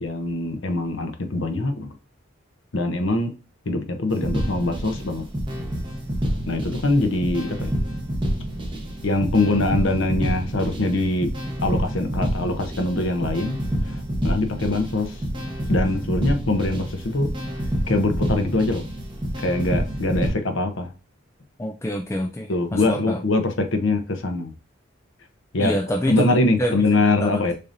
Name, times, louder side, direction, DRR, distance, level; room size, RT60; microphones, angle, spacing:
voice 1, 0.0-1.9 2.7-3.3 3.7-5.2 6.5-7.7 9.0-11.3 11.6-13.6 13.9-15.2 15.7-17.3 17.9-18.9 19.4-20.9 22.5-24.5 25.5-25.8 26.1-27.5, left 2 dB, 75° left, 0.8 m, -23 dB
sound 1, 4.1-20.3, equal, 25° right, 1.0 m, -28 dB
voice 2, 21.6-23.2 25.6-26.8 27.0-27.4, equal, 15° left, 0.3 m, -27 dB
6.5 x 2.8 x 2.6 m
head